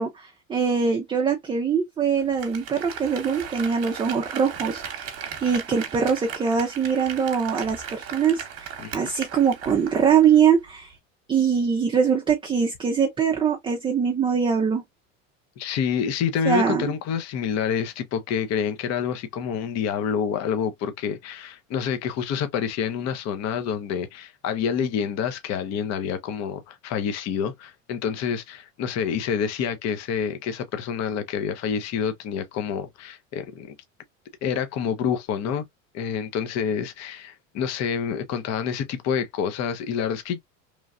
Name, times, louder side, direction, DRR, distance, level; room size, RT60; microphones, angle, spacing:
voice 1, 0.0-10.9 11.3-14.8 16.5-16.9, right 7 dB, 15° right, 0.4 m, -23 dB
Applause, 2.2-10.4 10.7-10.8, right 8 dB, 40° right, 1.0 m, -37 dB
voice 2, 8.8-9.1 15.6-33.7 34.4-35.7 35.9-40.4, left 7 dB, 45° left, 0.7 m, -28 dB
3.1 x 2.3 x 2.3 m
supercardioid pair, 100°, 39 cm